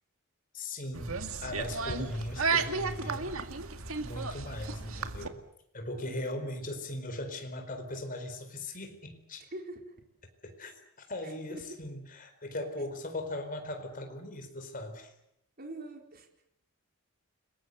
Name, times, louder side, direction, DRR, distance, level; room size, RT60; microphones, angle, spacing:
voice 1, 0.5-3.4 4.0-5.4 5.7-9.5 10.4-10.7 11.1-15.1, left 1 dB, 40° left, 6 dB, 4.5 m, -39 dB
sound 1, 0.9-5.3, right 4 dB, 70° right, 2.1 m, -33 dB
voice 2, 6.0-6.5 9.5-10.0 11.2-11.8 15.6-16.3, right 1 dB, 45° right, 3 dB, 4.3 m, -45 dB
30.0 x 20.5 x 8.1 m, 0.78 s
head